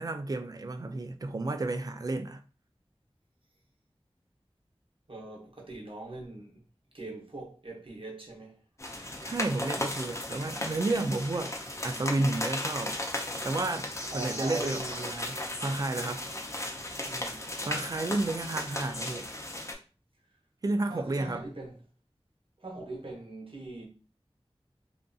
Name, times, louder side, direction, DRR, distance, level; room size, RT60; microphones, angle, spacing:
voice 1, 0.0-2.4 9.2-11.6 11.8-13.0 13.4-16.2 17.6-19.3 20.6-21.5, right 2 dB, 35° right, 0.3 m, -32 dB
voice 2, 5.1-6.6 6.9-8.6 14.1-15.0 17.1-17.5 20.9-21.8 22.6-23.9, right 2 dB, 60° right, 0.8 m, -41 dB
sound 1, 8.8-19.7, left 1 dB, 30° left, 0.6 m, -36 dB
2.5 x 2.5 x 2.3 m
wide cardioid pair, 45°, 10 cm